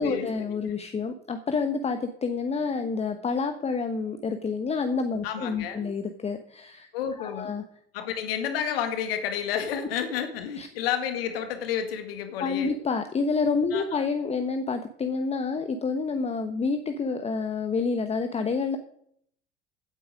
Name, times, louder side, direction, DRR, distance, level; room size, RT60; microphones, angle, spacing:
voice 1, 0.0-6.9 7.2-7.6 10.6-10.7 12.4-18.8, left 4 dB, 20° left, 7 dB, 1.1 m, -28 dB
voice 2, 5.2-5.9 6.9-7.5 7.9-12.7 13.7-14.1, left 8 dB, 60° left, 7 dB, 2.1 m, -30 dB
15.5 x 8.5 x 5.1 m, 0.67 s
figure-of-eight pair, 70°, 32 cm